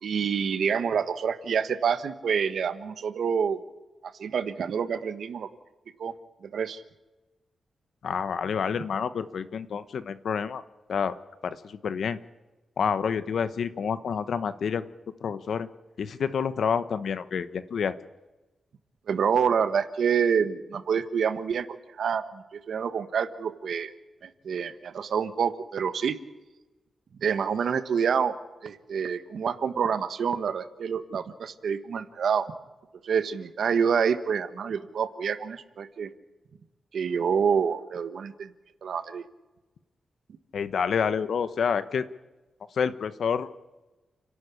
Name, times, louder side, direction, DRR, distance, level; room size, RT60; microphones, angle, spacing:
voice 1, 0.0-3.6 4.0-5.5 6.0-6.1 6.4-6.8 19.1-23.9 24.2-26.2 27.2-28.4 28.6-32.5 33.0-36.1 36.9-38.5 38.8-39.2, right 7 dB, 70° right, 11 dB, 1.4 m, -27 dB
voice 2, 8.0-10.6 10.9-11.1 11.4-12.2 12.8-14.9 15.2-15.7 16.0-18.0 40.5-42.1 42.7-43.5, left 6 dB, 65° left, 13 dB, 1.1 m, -28 dB
30.0 x 11.5 x 8.6 m, 1.1 s
wide cardioid pair, 175°, 0 cm